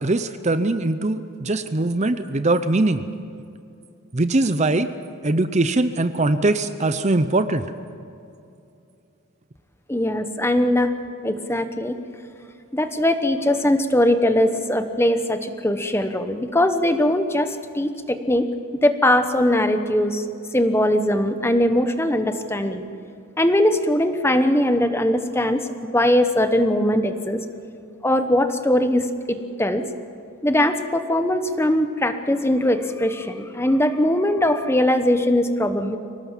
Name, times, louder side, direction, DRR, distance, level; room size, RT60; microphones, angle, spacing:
voice 1, 0.0-3.0 4.1-4.9 5.2-7.6, right 2 dB, 35° right, 11 dB, 0.7 m, -21 dB
voice 2, 9.9-10.9 11.2-12.0 12.7-18.5 18.8-20.2 20.5-22.8 23.4-27.4 28.0-29.8 30.4-36.0, left 1 dB, 10° left, 8 dB, 1.0 m, -20 dB
24.5 x 18.0 x 7.4 m, 2.6 s
head